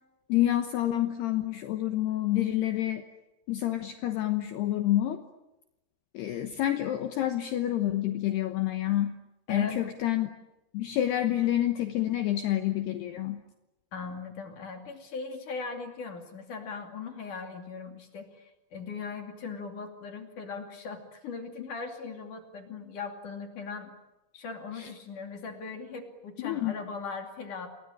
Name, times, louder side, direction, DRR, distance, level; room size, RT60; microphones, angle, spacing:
voice 1, 0.3-3.0 3.5-5.2 6.1-9.2 9.5-10.3 10.7-13.4 24.8-24.9 26.4-26.7, left 13 dB, 70° left, 7 dB, 2.8 m, -28 dB
voice 2, 9.5-9.9 13.9-23.9 24.3-27.7, left 5 dB, 45° left, 5 dB, 3.6 m, -39 dB
28.5 x 21.0 x 9.9 m, 0.98 s
omnidirectional pair, 5.8 m